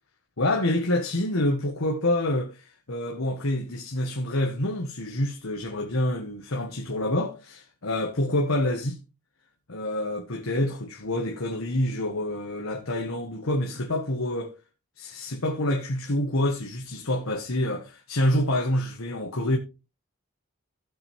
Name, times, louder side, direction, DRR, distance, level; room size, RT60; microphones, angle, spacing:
voice 1, 0.4-9.0 9.7-14.5 15.0-19.6, left 1 dB, 80° left, 1.5 m, -27 dB
15.5 x 5.9 x 3.4 m
head